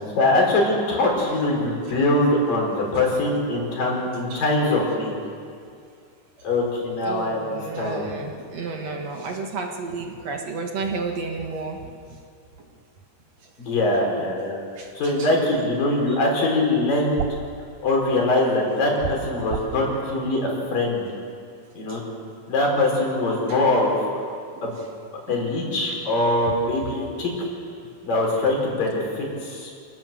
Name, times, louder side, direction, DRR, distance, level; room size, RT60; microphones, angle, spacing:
voice 1, 0.0-5.1 6.4-8.1 8.7-8.9 13.6-14.6 14.9-17.2 17.8-21.1 21.7-22.0 22.5-24.0 24.6-24.8 25.3-27.3 28.0-29.7, left 2 dB, 75° left, -1 dB, 6.5 m, -23 dB
voice 2, 3.7-4.0 4.3-4.5 7.0-11.9 14.8-15.3 19.4-19.5 21.9-22.0 23.5-23.6 24.6-24.8 25.3-25.5 26.5-26.6, right 4 dB, 55° right, 2 dB, 2.6 m, -32 dB
sound 1, 17.2-17.5 19.0-19.8, right 7 dB, 90° right, 3.0 m, -29 dB
28.0 x 18.0 x 7.6 m, 2.3 s
omnidirectional pair, 3.9 m